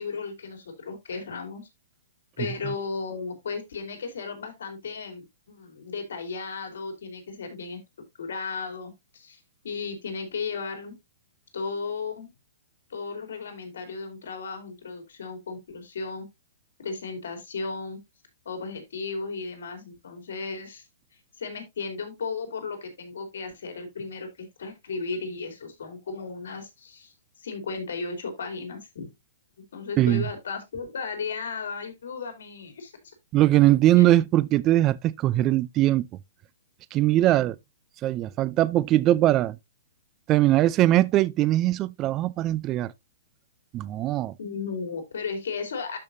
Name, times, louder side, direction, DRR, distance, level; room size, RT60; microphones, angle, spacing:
voice 1, 0.0-1.7 2.4-7.8 8.2-11.0 11.5-12.3 12.9-16.3 16.8-18.0 18.4-20.9 21.4-29.1 29.7-33.1 37.3-37.4 44.4-46.0, left 4 dB, 75° left, 3.0 m, -35 dB
voice 2, 33.3-36.1 36.9-37.6 38.0-39.6 40.3-42.9 43.7-44.3, right 14 dB, 25° right, 0.4 m, -21 dB
12.5 x 5.3 x 2.6 m
hypercardioid pair, 150°, 0 cm